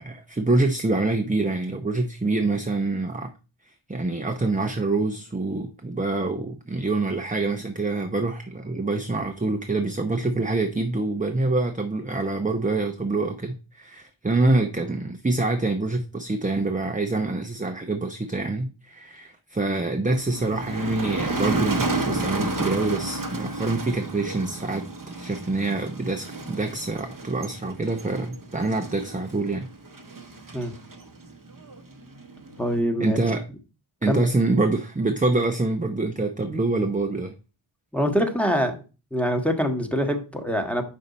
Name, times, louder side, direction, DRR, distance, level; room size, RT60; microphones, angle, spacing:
voice 1, 0.0-3.3 3.9-24.9 25.2-29.7 33.0-33.5 34.0-37.3, right 2 dB, 15° right, 0.7 m, -26 dB
Motor vehicle (road), 20.1-32.8, right 2 dB, 40° right, 0.9 m, -32 dB
voice 2, 32.6-33.2 34.1-34.2 37.9-38.7 39.1-40.8, equal, 5° left, 1.4 m, -24 dB
6.4 x 5.4 x 4.1 m
wide cardioid pair, 45°, 48 cm